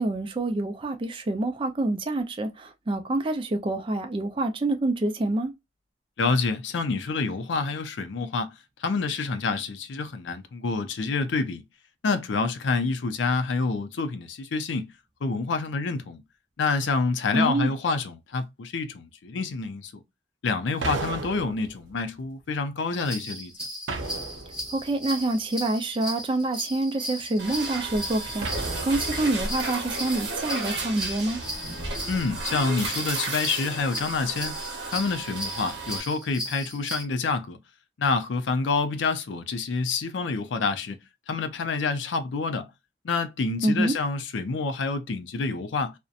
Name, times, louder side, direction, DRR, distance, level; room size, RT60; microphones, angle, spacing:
voice 1, 0.0-5.5 17.3-17.7 24.7-31.4 43.6-44.0, right 2 dB, 30° right, 0.4 m, -27 dB
voice 2, 6.2-8.5 8.8-11.6 12.0-14.9 15.2-16.2 16.6-20.0 20.4-23.5 32.1-34.5 34.9-37.6 38.0-41.0 41.3-42.7 43.0-45.9, left 4 dB, 75° left, 0.4 m, -27 dB
sound 1, 20.8-22.0 23.9-24.9 28.4-29.5, right 3 dB, 90° right, 0.6 m, -34 dB
sound 2, 23.0-37.0, equal, 5° right, 0.9 m, -37 dB
sound 3, 27.4-36.0, right 3 dB, 60° right, 0.9 m, -33 dB
2.7 x 2.1 x 2.3 m
head